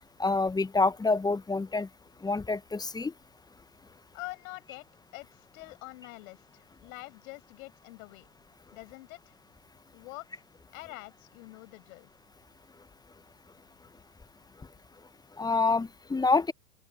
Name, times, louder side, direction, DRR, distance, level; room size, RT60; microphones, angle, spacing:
voice 1, 0.2-1.9 2.2-3.1 15.4-16.5, left 3 dB, 10° left, 0.9 m, -27 dB
voice 2, 4.1-4.9 5.1-8.3 8.7-9.4 9.9-10.4 10.7-12.1, left 22 dB, 60° left, 6.6 m, -45 dB
open air
hypercardioid pair, 105°, 45 cm